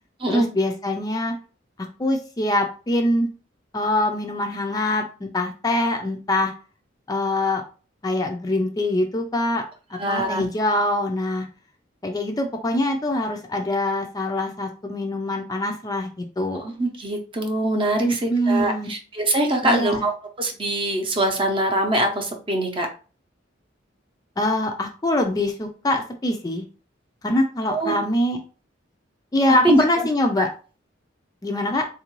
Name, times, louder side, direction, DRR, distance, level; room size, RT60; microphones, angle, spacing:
voice 1, 0.3-1.3 2.0-3.3 3.7-6.5 7.1-7.6 8.0-9.6 9.9-11.5 12.0-16.7 18.0-18.9 19.6-20.0 24.4-26.7 27.2-28.4 29.3-30.5 31.4-31.9, left 1 dB, 20° left, 3 dB, 0.4 m, -24 dB
voice 2, 10.0-10.5 16.6-20.1 20.4-22.9 27.7-28.0 29.6-29.8, right 1 dB, 30° right, 3 dB, 0.7 m, -23 dB
3.6 x 2.5 x 3.0 m, 0.35 s
head